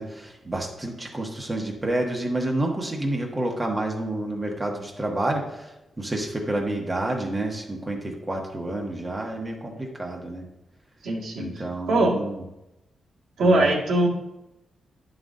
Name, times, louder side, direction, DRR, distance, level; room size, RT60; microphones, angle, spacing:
voice 1, 0.0-10.4 11.4-12.4 13.4-13.7, right 1 dB, 20° right, 1 dB, 1.2 m, -29 dB
voice 2, 11.0-12.2 13.4-14.1, right 2 dB, 85° right, -3 dB, 1.7 m, -22 dB
10.5 x 3.9 x 3.8 m, 0.92 s
cardioid pair, 100°, 0 cm